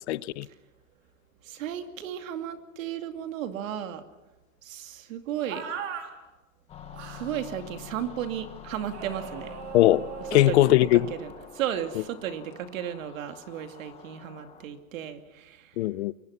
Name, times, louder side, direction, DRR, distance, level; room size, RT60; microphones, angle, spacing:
voice 1, 0.1-0.5 9.7-11.0 15.8-16.1, left 15 dB, 55° left, 0.7 m, -20 dB
voice 2, 1.4-4.0 4.6-5.6 7.1-9.5 10.3-15.7, right 10 dB, 75° right, 2.6 m, -34 dB
sound 1, 5.5-6.1 6.9-7.4 8.9-11.3, right 7 dB, 55° right, 3.7 m, -39 dB
sound 2, 6.7-14.7, left 7 dB, 15° left, 1.2 m, -46 dB
27.0 x 23.0 x 5.9 m
supercardioid pair, 175°, 40 cm